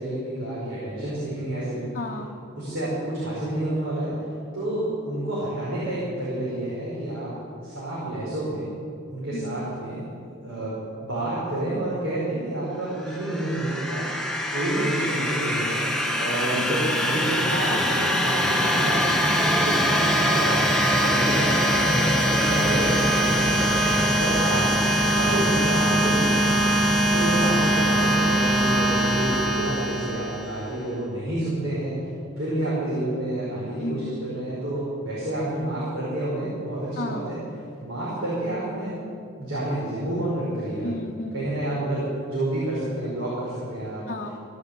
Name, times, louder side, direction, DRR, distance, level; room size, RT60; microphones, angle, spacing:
voice 1, 0.0-1.9 2.6-4.1 4.5-7.3 7.6-8.7 9.1-10.0 10.4-14.1 14.5-15.8 16.2-22.0 22.3-23.8 24.2-24.7 25.1-26.7 27.1-32.0 32.4-37.4 37.8-38.9 39.4-40.9 41.3-44.1, right 1 dB, 75° right, -8 dB, 5.4 m, -29 dB
voice 2, 1.9-2.4 9.3-9.8 14.8-15.2 16.5-16.9 21.4-21.7 22.5-22.9 27.4-27.7 33.8-34.3 37.0-37.4 40.8-41.5 44.1-44.3, left 1 dB, 40° left, -3 dB, 1.1 m, -35 dB
sound 1, 13.1-30.7, equal, 5° left, 1.0 m, -22 dB
17.0 x 9.9 x 8.4 m, 2.4 s
head